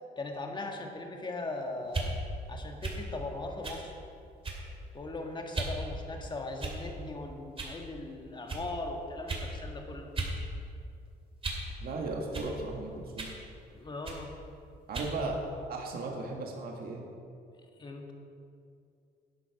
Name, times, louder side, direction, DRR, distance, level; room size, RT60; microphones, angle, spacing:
voice 1, 0.2-2.1 2.5-3.9 4.9-10.1 13.7-14.3 17.8-18.1, left 2 dB, 25° left, 2 dB, 1.7 m, -39 dB
sound 1, 1.9-2.1 2.8-3.0 3.6-3.8 4.4-4.7 5.5-5.8 6.6-7.0 7.6-7.8 8.5-8.6 9.3-9.5 10.2-10.4 10.7-11.7 12.3-12.5 13.2-13.4 14.0-14.2 14.9-15.1, right 3 dB, 30° right, 2.5 m, -36 dB
voice 2, 11.8-13.3 14.9-15.4 15.7-17.0, right 3 dB, 60° right, 1 dB, 1.7 m, -36 dB
11.5 x 8.3 x 6.0 m, 2.5 s
cardioid pair, 105°, 18 cm